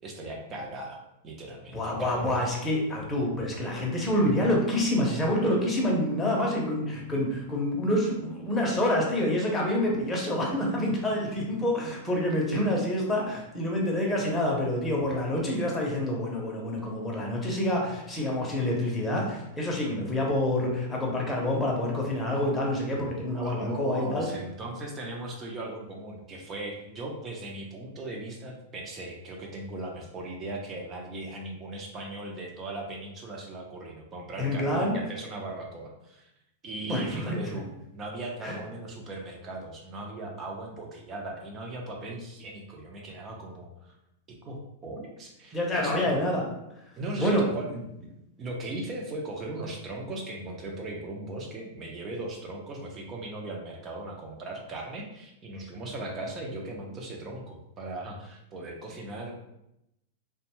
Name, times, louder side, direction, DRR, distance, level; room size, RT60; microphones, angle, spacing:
voice 1, 0.0-2.3 23.3-36.3 36.6-37.6 37.9-44.0 44.3-46.2 47.0-59.4, right 2 dB, 25° right, 0 dB, 0.6 m, -38 dB
voice 2, 1.7-24.2 34.4-34.9 36.9-37.4 38.4-38.6 45.5-46.5 47.2-47.4, left 1 dB, 10° left, -2 dB, 0.7 m, -27 dB
2.5 x 2.2 x 3.0 m, 0.85 s
hypercardioid pair, 135°, 0 cm